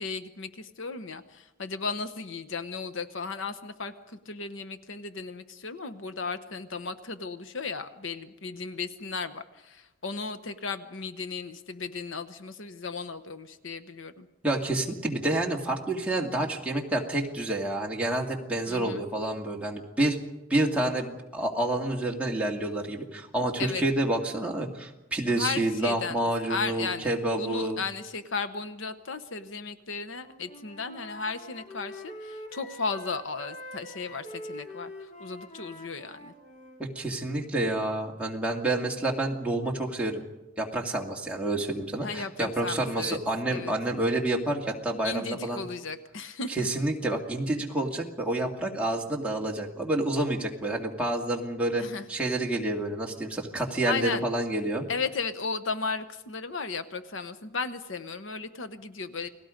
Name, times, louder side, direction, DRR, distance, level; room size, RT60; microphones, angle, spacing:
voice 1, 0.0-14.3 18.7-19.0 23.6-23.8 25.3-27.1 27.4-36.3 42.0-43.2 43.5-43.7 45.0-46.7 51.8-52.0 53.9-54.2 54.9-59.3, left 4 dB, 65° left, 11 dB, 1.0 m, -35 dB
voice 2, 14.4-20.2 20.5-27.8 36.8-40.2 40.6-45.6 46.5-51.8 52.1-54.8, right 1 dB, 5° right, -2 dB, 2.2 m, -28 dB
Wind instrument woodwind instrument, 30.1-36.8, left 1 dB, 35° left, 2.7 m, -45 dB
29.5 x 20.0 x 5.2 m, 1.0 s
head